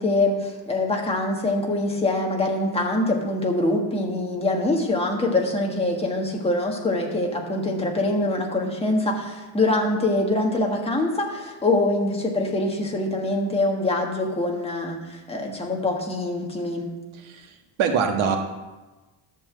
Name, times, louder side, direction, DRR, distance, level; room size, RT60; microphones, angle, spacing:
voice 1, 0.0-16.9, left 2 dB, 10° left, 0 dB, 1.5 m, -24 dB
voice 2, 17.1-18.4, right 6 dB, 80° right, 4 dB, 1.6 m, -24 dB
11.5 x 5.8 x 7.8 m, 1.2 s
cardioid pair, 170°, 47 cm